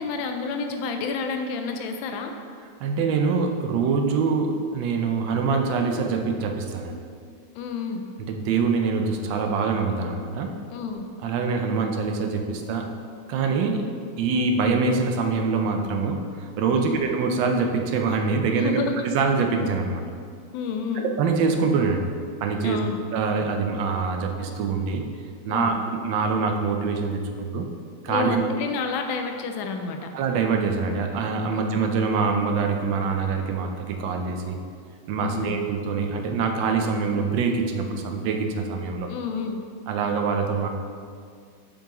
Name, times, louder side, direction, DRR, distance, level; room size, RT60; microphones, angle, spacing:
voice 1, 0.0-2.3 7.5-8.0 10.7-11.1 16.8-17.1 18.5-18.9 20.5-21.1 22.6-23.0 25.5-25.8 28.1-30.1 31.5-31.6 35.2-35.6 39.1-39.6, left 5 dB, 90° left, 5 dB, 1.4 m, -30 dB
voice 2, 2.8-7.0 8.2-10.5 11.2-12.9 13.3-13.8 14.2-18.8 19.0-20.0 21.0-22.1 22.4-22.8 23.1-25.0 25.4-27.7 28.0-28.4 30.1-34.6 35.1-39.1 39.9-40.7, right 4 dB, 80° right, 4 dB, 1.3 m, -24 dB
6.9 x 5.4 x 2.9 m, 2.2 s
omnidirectional pair, 2.1 m